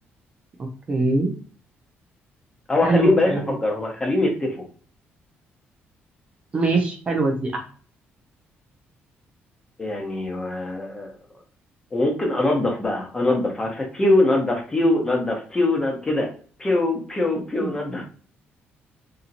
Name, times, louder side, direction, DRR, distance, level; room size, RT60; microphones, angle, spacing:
voice 1, 0.6-1.3 2.8-3.4 6.5-7.6 17.6-17.7, right 3 dB, 30° right, 3 dB, 0.5 m, -23 dB
voice 2, 2.7-4.5 9.8-11.1 11.9-16.3 16.6-18.0, left 2 dB, 15° left, 0 dB, 0.8 m, -22 dB
2.8 x 2.7 x 2.5 m, 0.41 s
cardioid pair, 145°, 4 cm